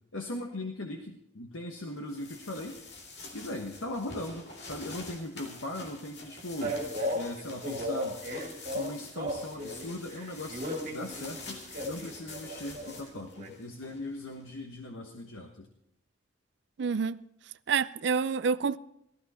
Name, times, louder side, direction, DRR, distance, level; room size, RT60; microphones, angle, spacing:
voice 1, 0.1-2.8 3.3-6.8 7.1-8.2 8.7-15.7, left 1 dB, 85° left, 1.3 m, -39 dB
sound 1, 1.9-14.4, left 2 dB, 55° left, 2.7 m, -47 dB
Male speech man speaking, 6.6-9.8 10.1-13.5, equal, 40° right, 2.7 m, -35 dB
voice 2, 16.8-17.2 17.7-18.8, right 5 dB, 60° right, 0.4 m, -27 dB
16.5 x 14.0 x 4.2 m
head